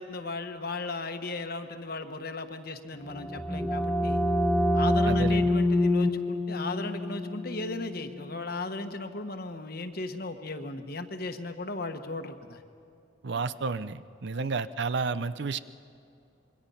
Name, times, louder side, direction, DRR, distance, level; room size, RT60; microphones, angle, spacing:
voice 1, 0.0-4.2 4.7-12.6 14.3-14.5, left 2 dB, 50° left, 7 dB, 1.2 m, -36 dB
sound 1, 3.0-8.6, left 1 dB, ahead, 0.9 m, -27 dB
voice 2, 5.1-5.5 13.2-15.6, right 4 dB, 55° right, 14 dB, 0.6 m, -31 dB
26.5 x 23.0 x 5.6 m, 2.5 s
head